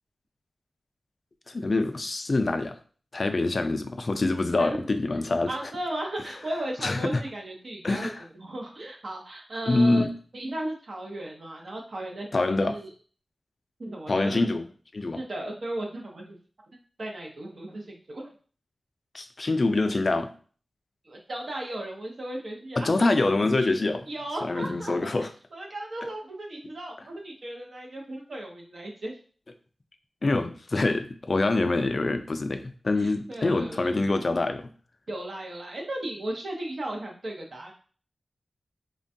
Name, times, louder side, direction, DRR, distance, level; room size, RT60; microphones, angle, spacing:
voice 1, 1.5-2.8 3.1-5.5 6.8-7.2 7.8-8.2 9.7-10.1 12.3-12.8 14.1-14.7 14.9-15.2 19.1-20.3 22.8-24.1 24.4-25.3 30.2-34.7, left 2 dB, 50° left, 8 dB, 0.3 m, -25 dB
voice 2, 5.5-8.1 8.4-10.1 10.3-12.9 13.8-14.4 15.1-16.4 17.0-18.3 21.0-23.1 23.6-23.7 24.1-25.1 25.5-29.1 33.0-33.9 35.1-37.7, right 1 dB, 65° right, 0 dB, 0.6 m, -36 dB
3.2 x 2.2 x 2.6 m, 0.41 s
wide cardioid pair, 75°, 0 cm